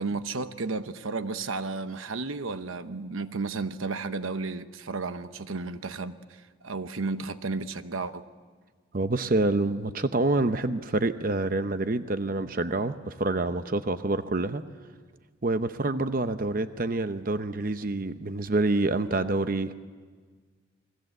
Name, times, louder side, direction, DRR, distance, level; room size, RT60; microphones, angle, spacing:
voice 1, 0.0-8.2, right 3 dB, 85° right, 1.0 m, -33 dB
voice 2, 8.9-14.6 15.4-19.7, right 2 dB, 45° right, 0.7 m, -27 dB
29.5 x 21.0 x 7.9 m
head